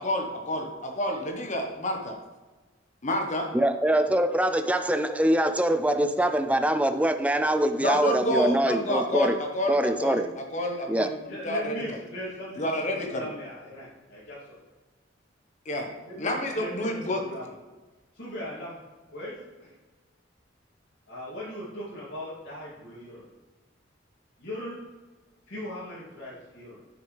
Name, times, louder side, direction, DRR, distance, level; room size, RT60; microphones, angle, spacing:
voice 1, 0.0-2.1 3.0-3.5 7.8-11.2 11.4-11.7 12.6-13.3 15.6-15.9 16.2-17.2, left 1 dB, 40° left, 2 dB, 1.1 m, -29 dB
voice 2, 3.5-9.4 9.7-10.3 10.9-11.1, right 1 dB, 5° right, 8 dB, 0.4 m, -24 dB
voice 3, 11.2-14.6 16.0-17.5 18.1-18.8 19.1-19.7 21.1-23.3 24.4-24.8 25.5-26.8, equal, 60° left, -11 dB, 2.4 m, -39 dB
9.8 x 6.4 x 3.3 m, 1.2 s
head